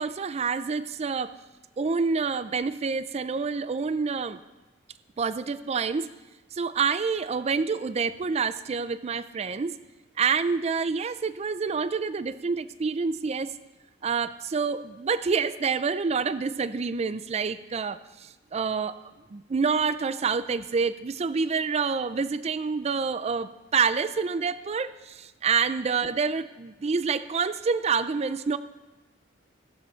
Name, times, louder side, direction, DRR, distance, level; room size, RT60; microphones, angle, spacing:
voice 1, 0.0-1.3 1.8-4.4 5.2-6.1 6.5-9.8 10.2-13.5 14.0-28.6, right 5 dB, 35° right, 13 dB, 0.4 m, -27 dB
17.5 x 6.8 x 4.4 m, 1.1 s
head